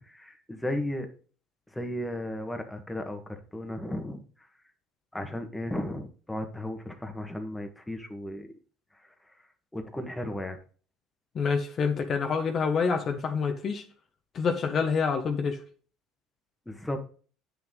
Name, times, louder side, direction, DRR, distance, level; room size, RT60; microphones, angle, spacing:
voice 1, 0.1-1.1 1.7-4.2 5.1-8.5 9.7-10.6 16.6-17.1, left 1 dB, 10° left, 5 dB, 1.5 m, -35 dB
voice 2, 11.3-13.8 14.3-15.6, left 5 dB, 45° left, 5 dB, 1.2 m, -27 dB
8.5 x 6.2 x 3.8 m, 0.40 s
supercardioid pair, 90°, 0 cm